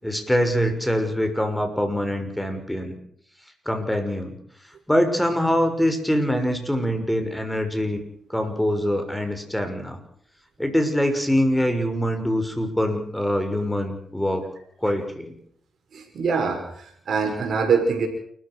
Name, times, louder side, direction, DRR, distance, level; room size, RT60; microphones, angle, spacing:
voice 1, 0.0-3.0 3.6-4.3 4.9-8.0 8.3-10.0 10.6-14.5 14.8-15.4, equal, 5° left, 6 dB, 6.4 m, -24 dB
voice 2, 15.9-18.1, right 5 dB, 65° right, 5 dB, 6.1 m, -24 dB
29.0 x 14.5 x 6.4 m, 0.63 s
supercardioid pair, 55°, 0 cm